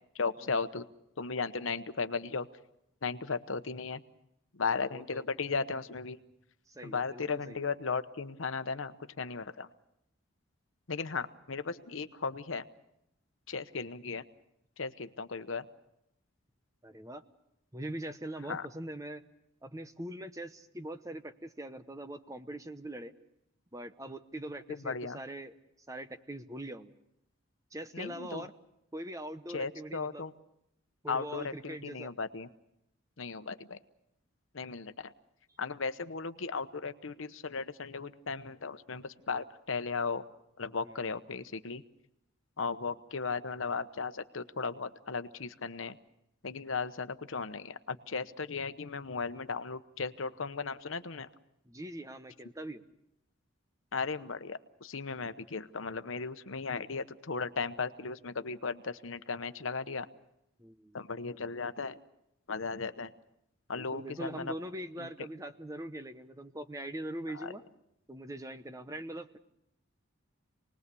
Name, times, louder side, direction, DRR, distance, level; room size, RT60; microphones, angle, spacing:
voice 1, 0.2-0.8 1.2-2.5 3.0-4.0 4.6-6.2 6.8-9.7 10.9-12.6 13.5-14.2 14.8-15.7 18.5-18.7 24.8-25.2 27.9-28.5 29.5-30.3 31.1-32.5 33.2-33.8 34.5-35.1 35.6-40.2 40.6-41.8 42.6-46.0 46.4-51.3 53.9-60.1 60.9-62.0 62.5-63.1 63.7-64.5 65.0-65.1 67.3-67.5, left 4 dB, 75° left, 11 dB, 0.9 m, -36 dB
voice 2, 4.7-5.2 6.7-7.6 16.8-17.2 17.7-19.2 19.6-23.1 23.7-25.5 25.9-26.9 27.7-28.5 28.9-30.2 31.0-32.1 40.8-41.1 51.7-52.8 60.6-61.0 63.7-67.6 68.1-69.4, right 1 dB, 15° right, 10 dB, 0.9 m, -42 dB
27.5 x 20.0 x 6.9 m, 0.82 s
head